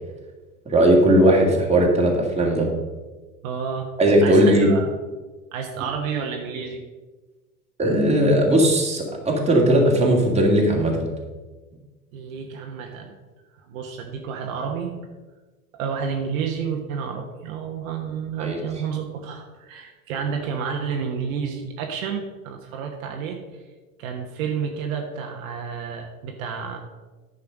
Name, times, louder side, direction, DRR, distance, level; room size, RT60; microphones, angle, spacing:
voice 1, 0.7-2.7 4.0-4.7 7.8-11.1 18.4-18.6, right 1 dB, 15° right, -1 dB, 2.3 m, -18 dB
voice 2, 3.4-3.9 4.2-4.9 5.5-6.8 12.1-13.1 13.7-15.0 15.7-23.4 24.0-26.8, right 6 dB, 60° right, 2 dB, 1.3 m, -30 dB
9.8 x 5.7 x 5.3 m, 1.2 s
hypercardioid pair, 85°, 46 cm